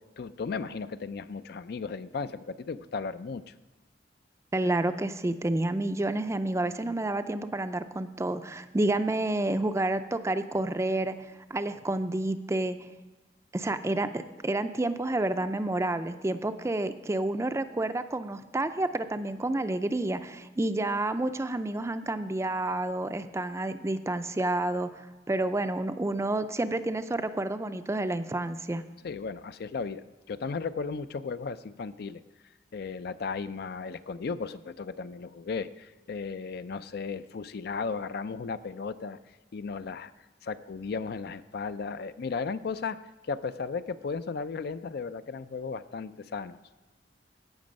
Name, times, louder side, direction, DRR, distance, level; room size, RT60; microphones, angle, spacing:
voice 1, 0.2-3.5 29.0-32.2 32.7-39.2 39.5-40.1 40.4-43.0 43.2-46.6, left 5 dB, 60° left, 13 dB, 0.4 m, -35 dB
voice 2, 4.5-11.2 11.5-12.8 13.5-28.8, right 2 dB, 15° right, 10 dB, 0.4 m, -29 dB
16.0 x 6.2 x 5.2 m, 1.2 s
head